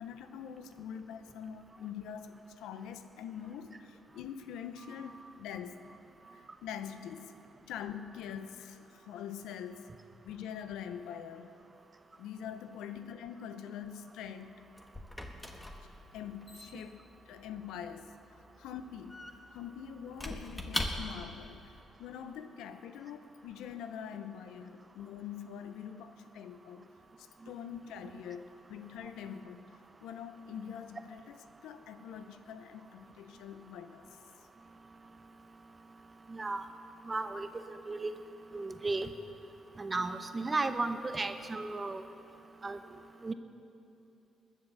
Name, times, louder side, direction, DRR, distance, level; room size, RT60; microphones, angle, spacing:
voice 1, 0.0-5.8 6.3-7.3 7.7-10.0 10.2-11.5 12.2-14.6 15.8-18.2 18.6-19.3 19.5-34.2, left 8 dB, 90° left, 10 dB, 0.7 m, -44 dB
Squeak / Wood, 14.2-21.4, left 1 dB, 15° left, 1.4 m, -42 dB
voice 2, 36.3-36.7 37.0-38.1 38.5-39.1 39.8-42.0 42.6-42.8 43.2-43.3, right 3 dB, 25° right, 9 dB, 0.9 m, -34 dB
20.5 x 7.4 x 6.8 m, 2.8 s
cardioid pair, 90°, 0 cm